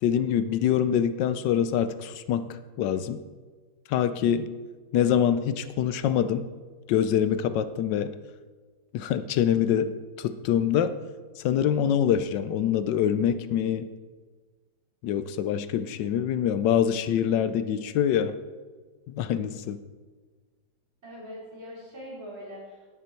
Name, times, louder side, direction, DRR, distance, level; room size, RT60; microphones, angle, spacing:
voice 1, 0.0-3.2 3.9-4.5 4.9-6.4 6.9-8.1 8.9-11.0 11.4-13.9 15.0-18.4 19.1-19.8, left 9 dB, 75° left, 12 dB, 1.2 m, -25 dB
voice 2, 21.0-22.9, equal, 35° right, -7 dB, 4.2 m, -42 dB
17.5 x 6.3 x 4.4 m, 1.4 s
omnidirectional pair, 2.1 m